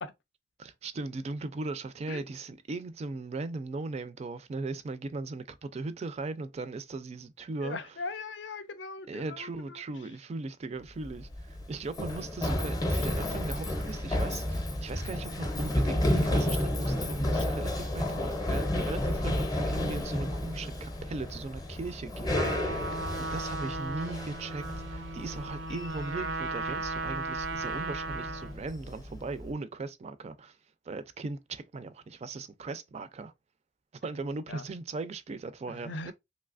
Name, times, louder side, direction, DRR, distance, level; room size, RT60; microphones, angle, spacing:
voice 1, 0.6-8.0 9.1-22.8 23.2-30.6 30.9-33.3 34.0-36.1, right 3 dB, 35° right, 0.4 m, -38 dB
voice 2, 7.6-9.8 17.3-17.5 18.5-18.7 34.5-34.6 35.7-36.1, left 3 dB, 70° left, 0.5 m, -40 dB
Run, 10.9-29.5, left 1 dB, 20° left, 0.6 m, -32 dB
Trumpet, 22.3-28.6, right 3 dB, 85° right, 0.6 m, -36 dB
3.2 x 2.8 x 2.4 m
head